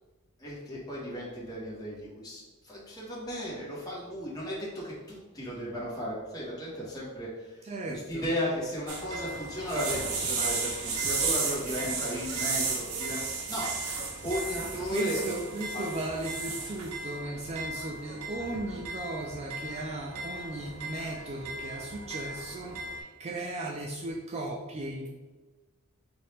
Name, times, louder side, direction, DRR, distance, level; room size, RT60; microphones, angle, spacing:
voice 1, 0.4-15.2 15.7-15.9 21.3-21.4, equal, 20° left, -7 dB, 1.3 m, -35 dB
voice 2, 7.6-8.3 14.6-25.1, right 2 dB, 30° right, 0 dB, 0.3 m, -36 dB
sound 1, 8.9-23.0, right 4 dB, 75° right, 0.7 m, -35 dB
sound 2, 9.4-15.9 16.6-17.2 17.5-18.7, left 3 dB, 45° left, 0.4 m, -51 dB
4.2 x 2.8 x 3.3 m, 1.3 s
head